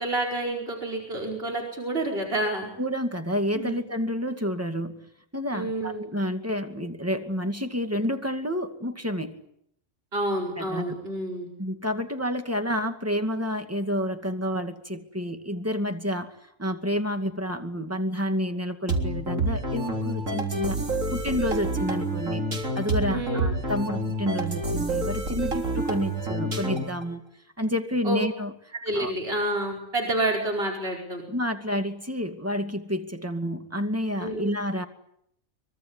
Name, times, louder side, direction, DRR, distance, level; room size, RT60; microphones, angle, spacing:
voice 1, 0.0-2.7 3.5-3.8 5.5-6.1 10.1-11.5 23.1-23.5 28.0-28.2 28.8-31.2 34.2-34.6, right 1 dB, 45° right, 0 dB, 5.3 m, -29 dB
voice 2, 2.8-9.4 10.6-11.0 11.6-16.3 16.6-20.8 21.1-22.4 22.7-27.2 27.6-28.5 28.9-29.1 31.3-34.9, equal, 10° right, 6 dB, 2.3 m, -29 dB
sound 1, 18.9-27.0, right 2 dB, 65° right, 4.1 m, -28 dB
24.5 x 24.0 x 9.8 m, 0.74 s
omnidirectional pair, 1.4 m